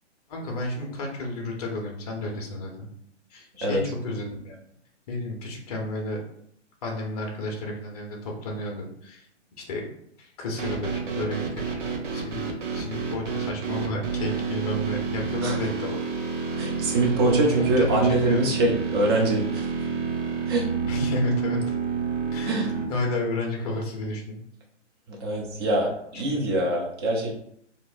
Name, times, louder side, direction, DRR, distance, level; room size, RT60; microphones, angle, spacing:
voice 1, 0.3-2.9 3.3-4.6 5.1-6.2 6.8-9.3 9.6-9.8 10.2-11.8 12.1-16.0 17.2-18.4 20.9-21.8 22.3-24.4 26.1-26.2, left 2 dB, 30° left, 1 dB, 0.8 m, -32 dB
sound 1, 10.6-22.8, right 6 dB, 80° right, 1.0 m, -29 dB
voice 2, 16.6-19.7 20.5-20.7 22.5-22.7 25.2-27.4, right 2 dB, 20° right, -1 dB, 0.5 m, -24 dB
3.6 x 2.8 x 2.5 m, 0.70 s
hypercardioid pair, 145°, 37 cm